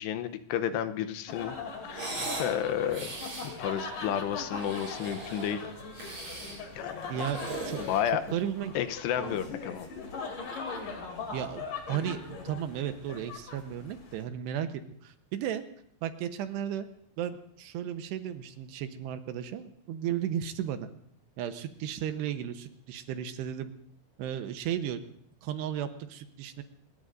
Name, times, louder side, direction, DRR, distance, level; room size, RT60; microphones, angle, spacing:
voice 1, 0.0-1.5 1.8-3.1 3.6-5.6 6.7-7.1 7.8-8.4 8.8-9.9, left 10 dB, 80° left, 10 dB, 2.9 m, -31 dB
sound 1, 1.3-14.2, left 4 dB, 50° left, 4.1 m, -40 dB
sound 2, 1.9-2.5 2.9-3.5 4.4-5.6 5.9-6.6 7.0-8.5, right 2 dB, 40° right, 7.3 m, -38 dB
voice 2, 7.1-7.8 8.3-8.8 9.2-9.4 11.3-15.6 16.0-16.9 17.2-20.9 21.4-23.7 24.2-25.0 25.4-26.6, right 10 dB, 80° right, 8 dB, 3.0 m, -34 dB
26.5 x 21.0 x 2.6 m, 0.66 s
omnidirectional pair, 4.9 m